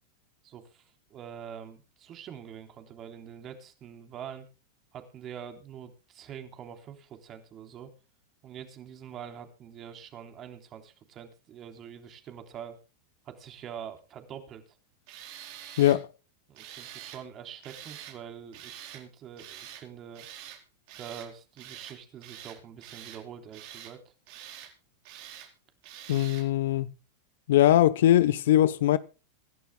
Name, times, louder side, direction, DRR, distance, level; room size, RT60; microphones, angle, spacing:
voice 1, 0.4-4.5 4.9-7.9 8.4-12.8 13.3-14.8 16.5-20.3 21.0-24.1, right 8 dB, 35° right, 3.6 m, -45 dB
Tools, 15.1-16.0 16.5-17.2 17.6-18.2 18.5-19.0 19.4-19.8 20.1-20.6 20.9-21.3 21.6-22.0 22.2-23.2 23.5-23.9 24.3-24.7 25.0-25.5 25.8-26.5, right 11 dB, 60° right, 4.5 m, -45 dB
voice 2, 15.8-16.1 26.1-26.9 27.5-29.0, left 13 dB, 70° left, 0.8 m, -21 dB
25.5 x 11.5 x 2.2 m
hypercardioid pair, 105°, 0 cm